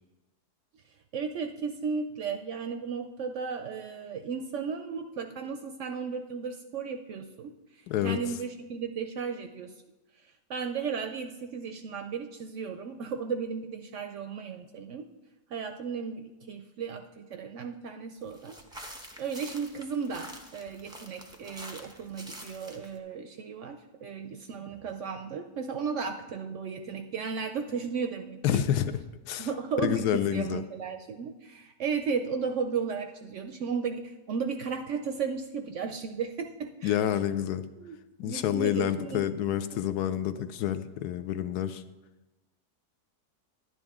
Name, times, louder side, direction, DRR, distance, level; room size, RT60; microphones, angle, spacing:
voice 1, 1.1-7.5 8.0-9.7 10.5-15.1 15.5-18.8 19.2-28.6 29.4-37.0 37.8-39.2, right 6 dB, 70° right, 6 dB, 0.7 m, -35 dB
voice 2, 7.9-8.2 28.4-28.9 29.3-29.5 29.8-30.6 36.8-37.6 38.2-41.8, left 11 dB, 80° left, 11 dB, 1.1 m, -28 dB
sound 1, 18.3-23.0, equal, 5° right, 0.6 m, -46 dB
11.0 x 9.8 x 3.6 m, 1.1 s
omnidirectional pair, 1.7 m